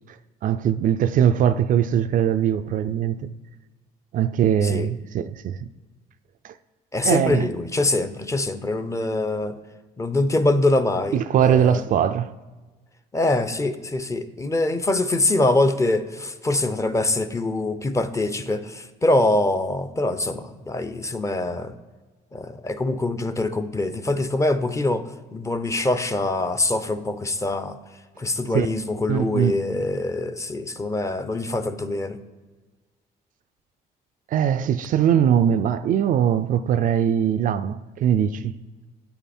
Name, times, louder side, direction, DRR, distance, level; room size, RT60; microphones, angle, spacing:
voice 1, 0.4-3.3 4.1-5.7 6.4-6.5 7.0-7.5 11.1-12.3 28.5-28.7 29.1-29.6 34.3-38.6, right 9 dB, 55° right, 0.4 m, -21 dB
voice 2, 6.9-9.6 10.0-11.8 13.1-21.7 22.3-27.8 28.2-32.2, left 2 dB, 20° left, 0.6 m, -24 dB
8.6 x 5.6 x 4.3 m
cardioid pair, 110°, 17 cm